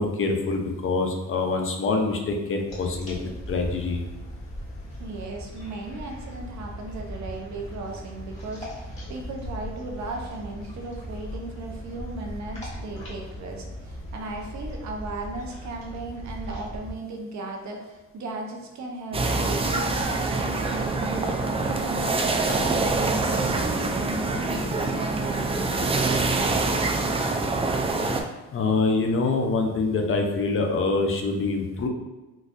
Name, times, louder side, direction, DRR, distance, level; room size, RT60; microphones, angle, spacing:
voice 1, 0.0-3.2 3.5-4.0 28.5-31.9, left 3 dB, 45° left, 3 dB, 0.6 m, -25 dB
sound 1, 2.7-16.9, equal, 20° left, 1.4 m, -38 dB
voice 2, 5.0-26.8, right 2 dB, 70° right, 1 dB, 0.7 m, -36 dB
sound 2, 19.1-28.2, right 3 dB, 20° right, 0.3 m, -25 dB
3.9 x 2.3 x 2.5 m, 1.1 s
cardioid pair, 90°, 30 cm